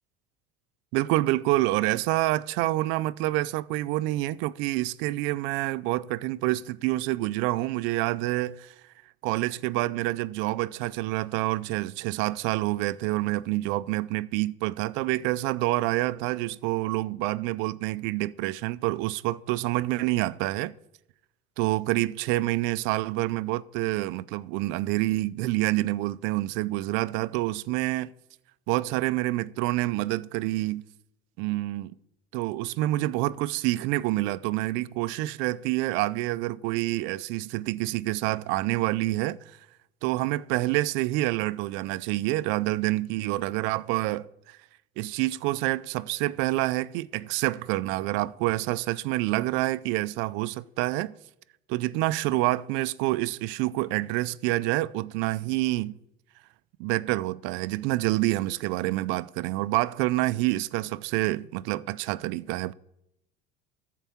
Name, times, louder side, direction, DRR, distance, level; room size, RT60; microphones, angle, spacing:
voice 1, 0.9-8.7 9.2-20.7 21.6-28.1 28.7-30.8 31.4-31.9 32.3-39.4 40.0-44.6 45.0-51.1 51.7-56.0 56.8-62.7, right 18 dB, 70° right, 0.5 m, -27 dB
14.0 x 4.7 x 7.1 m
supercardioid pair, 125°, 21 cm